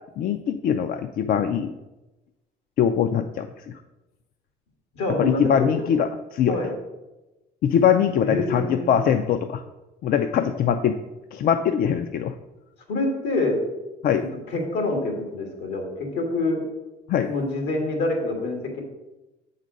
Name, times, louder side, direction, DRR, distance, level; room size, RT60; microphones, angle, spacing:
voice 1, 0.2-1.7 2.8-3.6 5.2-6.1 6.3-6.6 7.6-9.6 10.0-11.0 11.3-12.3 14.0-14.3 17.1-17.3, left 8 dB, 60° left, 8 dB, 0.4 m, -22 dB
voice 2, 4.9-5.7 6.5-6.7 8.2-9.0 12.9-13.6 14.2-16.6 17.3-18.8, left 2 dB, 85° left, 1 dB, 2.2 m, -26 dB
7.5 x 4.0 x 6.2 m, 1.0 s
cardioid pair, 110°, 17 cm